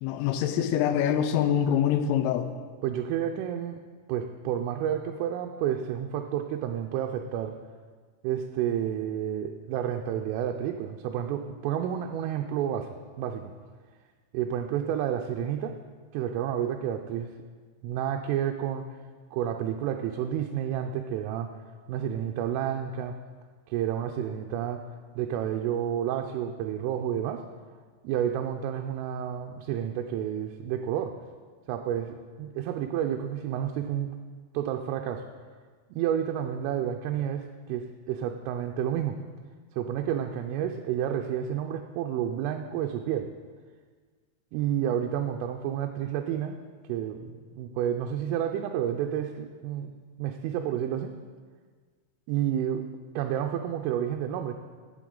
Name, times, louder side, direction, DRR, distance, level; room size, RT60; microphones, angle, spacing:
voice 1, 0.0-2.5, left 9 dB, 85° left, 8 dB, 3.1 m, -25 dB
voice 2, 2.8-3.8 4.1-7.6 8.2-13.5 14.3-15.8 16.1-17.3 17.8-18.9 19.3-21.5 21.9-23.2 23.7-24.8 25.2-27.4 28.0-31.2 31.7-34.1 34.5-35.3 35.9-39.2 39.8-43.3 44.5-46.6 46.9-49.9 50.2-51.1 52.3-52.9 53.2-54.6, right 10 dB, 85° right, 3 dB, 3.1 m, -30 dB
15.5 x 7.7 x 3.8 m, 1.5 s
omnidirectional pair, 5.7 m